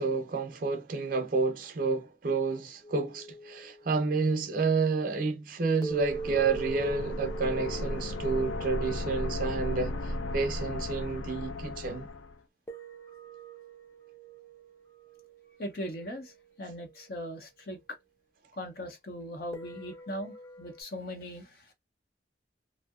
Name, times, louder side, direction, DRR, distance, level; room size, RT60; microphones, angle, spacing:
voice 1, 0.0-12.1, right 4 dB, 50° right, 0.5 m, -30 dB
sound 1, 2.8-4.4 5.8-11.3 12.7-18.1 19.5-20.8, right 4 dB, 15° left, 0.5 m, -44 dB
sound 2, 5.9-12.4, left 2 dB, 80° left, 0.4 m, -35 dB
voice 2, 15.6-16.3 16.6-17.8 18.6-21.7, equal, 55° left, 0.7 m, -39 dB
2.7 x 2.0 x 2.3 m
head